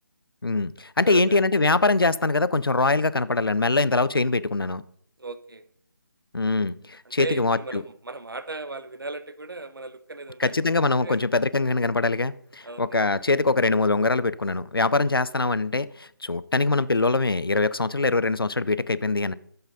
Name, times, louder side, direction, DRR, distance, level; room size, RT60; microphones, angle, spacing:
voice 1, 0.4-4.8 6.3-7.8 10.4-19.3, left 3 dB, 80° left, 0.7 m, -23 dB
voice 2, 1.0-1.4 5.2-5.7 7.2-10.7 11.0-11.2 12.6-13.0 16.5-16.6, right 3 dB, 75° right, 1.2 m, -37 dB
12.0 x 8.1 x 5.4 m
figure-of-eight pair, 155°, 12 cm